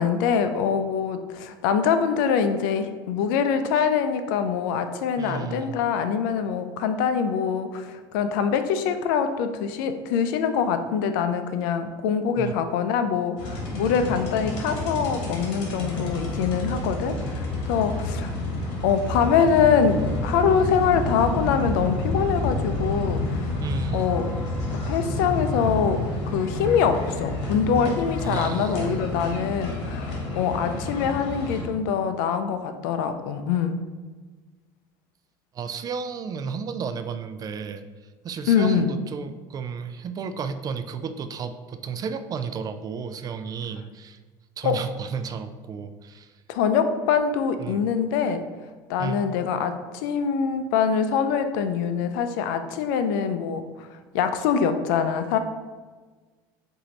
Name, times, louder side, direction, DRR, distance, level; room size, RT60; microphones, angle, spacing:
voice 1, 0.0-18.3 18.8-23.5 23.9-24.2 24.7-33.8 38.5-38.9 44.6-44.8 46.5-48.4 48.9-53.9 54.1-55.4, left 7 dB, 80° left, 9 dB, 0.4 m, -24 dB
voice 2, 5.2-5.8 12.4-12.5 23.6-24.1 28.2-29.1 35.5-37.8 38.2-44.2 44.6-46.3 47.6-47.8 49.0-49.2, right 6 dB, 35° right, 9 dB, 0.4 m, -32 dB
sound 1, 13.4-31.6, left 2 dB, 65° left, 1.3 m, -29 dB
4.3 x 2.7 x 3.9 m, 1.4 s
supercardioid pair, 100°, 11 cm